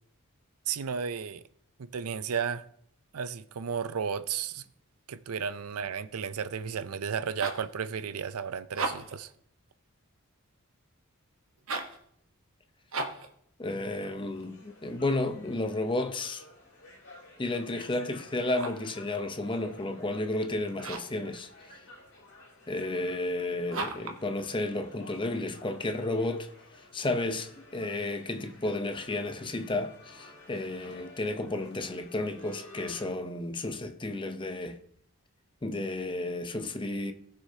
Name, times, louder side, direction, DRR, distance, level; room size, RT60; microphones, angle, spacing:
voice 1, 0.7-1.4 1.9-2.6 3.1-4.6 5.1-9.3, right 7 dB, 90° right, 0.5 m, -33 dB
sound 1, 7.4-7.7 8.6-9.2 11.6-12.0 12.9-13.3 18.4-18.9 20.8-21.2 23.7-24.2, right 3 dB, 70° right, 1.2 m, -35 dB
voice 2, 13.6-16.4 17.4-21.5 22.7-26.5 26.9-34.8 35.6-37.1, left 2 dB, 25° left, 0.7 m, -32 dB
sound 2, 13.9-33.1, left 2 dB, 60° left, 3.4 m, -53 dB
18.5 x 6.4 x 2.8 m
head